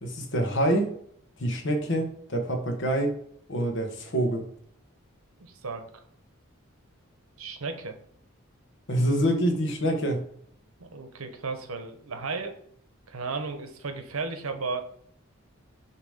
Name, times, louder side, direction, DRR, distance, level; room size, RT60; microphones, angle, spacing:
voice 1, 0.0-0.9 1.4-3.1 3.5-4.4 8.9-10.2, right 1 dB, 60° left, 5 dB, 1.2 m, -26 dB
voice 2, 5.4-5.8 7.4-8.0 10.8-12.5 13.1-14.8, right 4 dB, 90° right, 7 dB, 0.9 m, -34 dB
6.7 x 2.9 x 5.0 m, 0.65 s
head